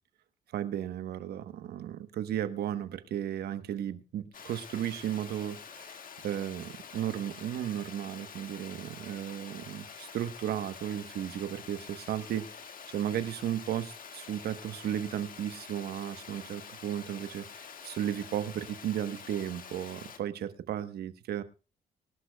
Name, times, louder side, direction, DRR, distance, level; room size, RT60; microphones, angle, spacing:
voice 1, 0.5-21.4, right 11 dB, 80° right, 11 dB, 1.1 m, -35 dB
Water, 4.3-20.2, left 6 dB, 60° left, 1.9 m, -47 dB
23.5 x 11.5 x 2.3 m, 0.33 s
supercardioid pair, 60°, 16 cm